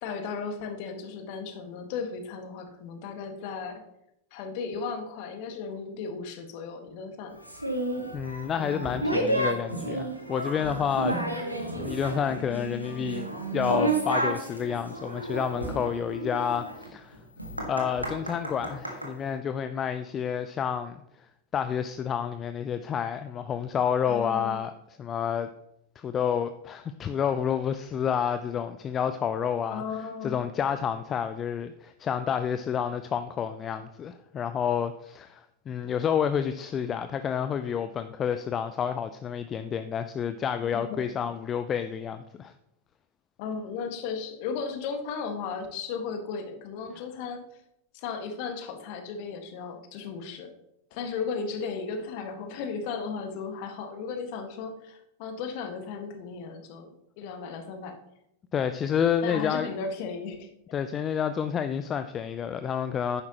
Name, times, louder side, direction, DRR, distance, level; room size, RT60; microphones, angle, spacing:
voice 1, 0.0-3.8 4.3-7.4 8.6-9.6 24.1-24.6 29.7-30.3 40.9-41.0 43.4-47.4 47.9-50.5 50.9-58.0 59.2-60.5, left 5 dB, 45° left, 6 dB, 1.6 m, -35 dB
sound 1, 7.4-19.1, right 2 dB, 85° right, 1.7 m, -31 dB
voice 2, 8.1-11.5 11.8-17.2 17.7-21.0 21.5-24.7 25.0-25.5 26.0-29.8 30.2-42.5 58.5-59.7 60.7-63.2, left 8 dB, 25° left, 10 dB, 0.5 m, -29 dB
11.0 x 9.6 x 2.9 m, 0.81 s
figure-of-eight pair, 90°, 0 cm